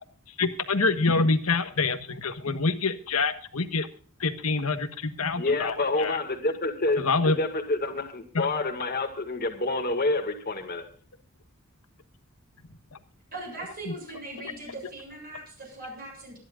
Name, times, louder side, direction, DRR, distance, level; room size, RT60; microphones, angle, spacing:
voice 1, 0.4-3.9 4.2-6.2 7.0-7.4 8.3-8.5, left 3 dB, 90° left, 10 dB, 1.4 m, -26 dB
voice 2, 5.3-10.8, left 2 dB, 45° left, 3 dB, 2.2 m, -28 dB
voice 3, 13.3-16.4, right 2 dB, 45° right, 0 dB, 7.4 m, -40 dB
24.5 x 11.0 x 2.5 m, 0.43 s
head